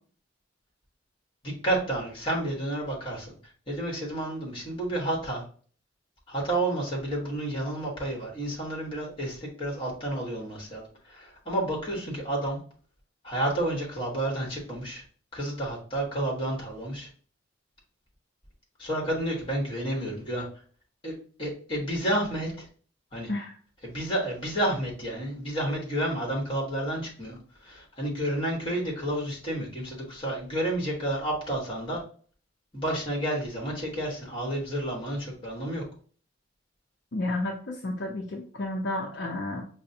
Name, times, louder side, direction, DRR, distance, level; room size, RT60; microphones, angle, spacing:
voice 1, 1.4-3.3 3.7-5.4 6.3-12.6 13.2-15.0 15.3-17.1 18.8-20.5 21.0-22.6 23.1-23.3 23.8-27.4 27.6-32.0 32.7-35.8, right 1 dB, 25° left, -3 dB, 1.3 m, -30 dB
voice 2, 37.1-39.6, left 2 dB, 60° left, 0 dB, 0.6 m, -31 dB
5.1 x 2.1 x 2.7 m, 0.43 s
head